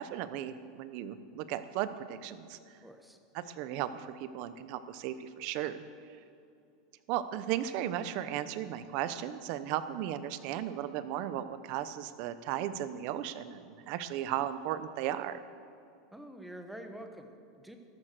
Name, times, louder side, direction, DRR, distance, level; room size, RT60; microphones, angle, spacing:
voice 1, 0.0-2.6 3.3-5.8 7.1-15.4, right 11 dB, 50° right, 13 dB, 0.8 m, -36 dB
voice 2, 2.8-3.2 16.1-17.8, right 1 dB, ahead, 5 dB, 1.1 m, -47 dB
13.5 x 12.0 x 6.7 m, 2.5 s
supercardioid pair, 155°, 2 cm